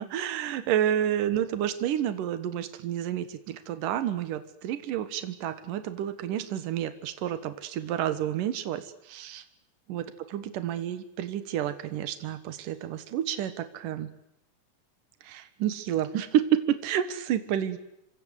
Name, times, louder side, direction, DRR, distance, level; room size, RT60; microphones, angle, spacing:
voice 1, 0.0-9.4 9.9-10.1 10.3-14.1 15.2-17.8, right 10 dB, 80° right, 11 dB, 3.0 m, -30 dB
27.0 x 25.0 x 8.1 m, 0.80 s
omnidirectional pair, 3.8 m